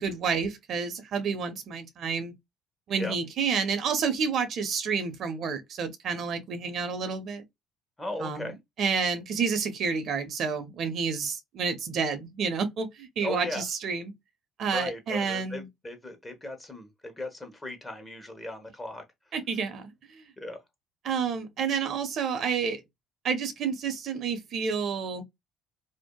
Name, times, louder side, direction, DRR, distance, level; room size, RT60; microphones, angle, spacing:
voice 1, 0.0-2.3 2.9-7.4 8.2-8.5 8.8-14.1 14.6-15.7 19.3-20.3 21.0-22.8 23.2-25.2, right 5 dB, 60° right, 0.8 m, -29 dB
voice 2, 8.0-8.6 13.2-13.6 14.7-19.3 20.4-20.6, left 1 dB, 20° left, 1.1 m, -37 dB
2.7 x 2.5 x 2.2 m
supercardioid pair, 70°, 0 cm